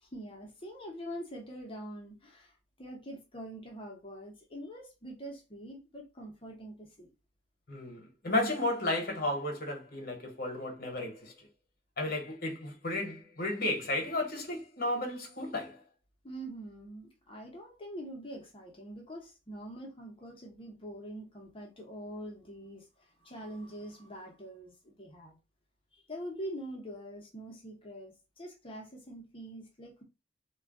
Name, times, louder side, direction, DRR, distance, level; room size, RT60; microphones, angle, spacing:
voice 1, 0.0-2.5 2.8-7.1 16.2-25.4 26.1-30.0, right 1 dB, 30° left, 0.7 m, -44 dB
voice 2, 7.7-11.5 12.0-15.8, left 1 dB, 55° left, 1.0 m, -33 dB
2.2 x 2.2 x 3.5 m
head